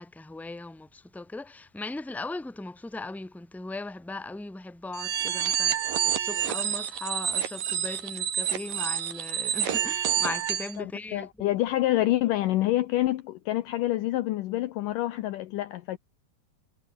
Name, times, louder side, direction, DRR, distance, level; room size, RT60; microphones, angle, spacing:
voice 1, 0.0-11.3, left 2 dB, ahead, 2.3 m, -38 dB
sound 1, 4.9-10.7, right 9 dB, 60° right, 3.6 m, -28 dB
voice 2, 10.8-16.0, left 15 dB, 75° left, 2.1 m, -27 dB
omnidirectional pair, 4.5 m